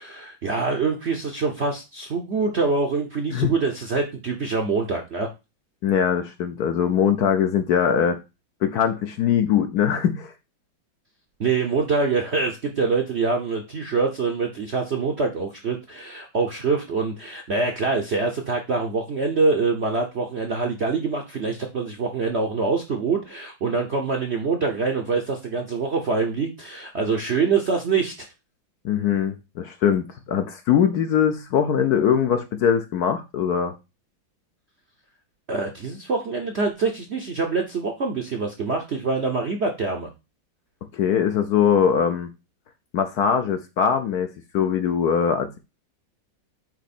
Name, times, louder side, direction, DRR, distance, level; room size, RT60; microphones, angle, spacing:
voice 1, 0.0-5.3 11.4-28.3 35.5-40.1, right 4 dB, 55° right, 0.8 m, -25 dB
voice 2, 5.8-8.2 8.6-10.3 28.8-33.7 40.9-42.3 42.9-44.3 44.5-45.6, left 8 dB, 65° left, 1.0 m, -21 dB
8.9 x 3.0 x 4.2 m
omnidirectional pair, 2.1 m